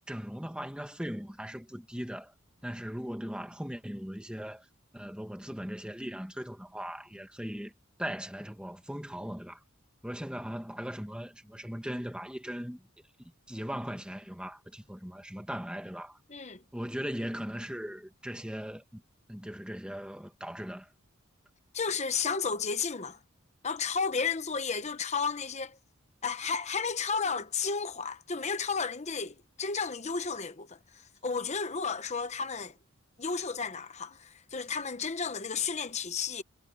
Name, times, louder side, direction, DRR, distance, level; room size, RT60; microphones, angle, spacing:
voice 1, 0.1-2.3 2.6-4.6 4.9-7.7 8.0-9.6 10.0-12.8 13.5-16.2 16.7-19.0 19.3-20.9, equal, 5° right, 1.6 m, -39 dB
voice 2, 16.3-16.6 21.7-23.2 23.6-25.8 26.2-32.7 33.2-36.4, left 5 dB, 35° left, 0.9 m, -33 dB
head